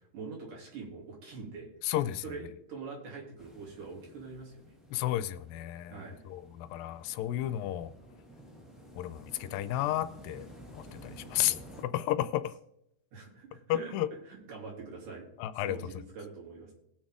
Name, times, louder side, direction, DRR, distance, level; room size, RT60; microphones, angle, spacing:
voice 1, 0.0-1.7 2.2-4.6 5.9-6.2 13.1-13.9 14.3-15.3 15.6-16.7, right 4 dB, 65° right, 4.4 m, -44 dB
voice 2, 1.8-2.2 4.9-7.9 9.0-12.6 13.7-14.1 15.4-15.8, left 13 dB, 85° left, 2.4 m, -32 dB
sound 1, 3.4-11.8, equal, ahead, 0.5 m, -52 dB
19.0 x 6.4 x 3.6 m
omnidirectional pair, 4.0 m